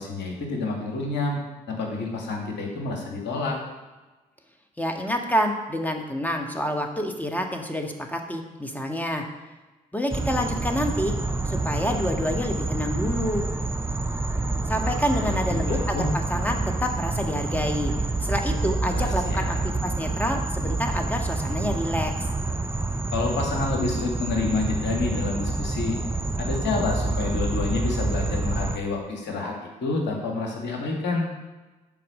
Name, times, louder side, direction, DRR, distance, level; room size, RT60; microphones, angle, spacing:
voice 1, 0.0-1.4 1.7-3.6 15.2-16.1 18.9-19.6 23.1-26.0 26.4-29.5 29.8-31.3, left 3 dB, 60° left, 0 dB, 2.3 m, -28 dB
voice 2, 4.8-9.2 9.9-11.1 11.4-13.4 14.7-17.9 18.2-22.1, equal, 10° left, 3 dB, 1.6 m, -28 dB
sound 1, 10.1-28.8, right 2 dB, 10° right, 0.7 m, -27 dB
10.5 x 4.7 x 6.5 m, 1.2 s
figure-of-eight pair, 45°, 21 cm